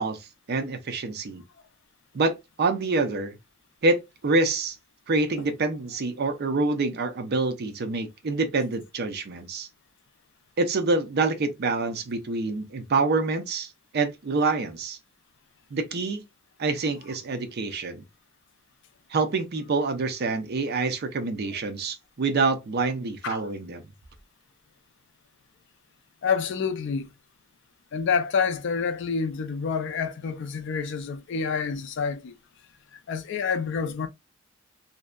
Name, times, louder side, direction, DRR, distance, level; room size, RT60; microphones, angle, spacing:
voice 1, 0.0-1.4 2.1-3.4 3.8-4.8 5.1-9.7 10.6-15.0 15.7-16.2 16.6-18.0 19.1-23.8, right 3 dB, 50° right, 0.5 m, -26 dB
voice 2, 26.2-27.1 27.9-32.4 33.1-34.1, left 5 dB, 60° left, 0.4 m, -28 dB
2.6 x 2.1 x 2.2 m
head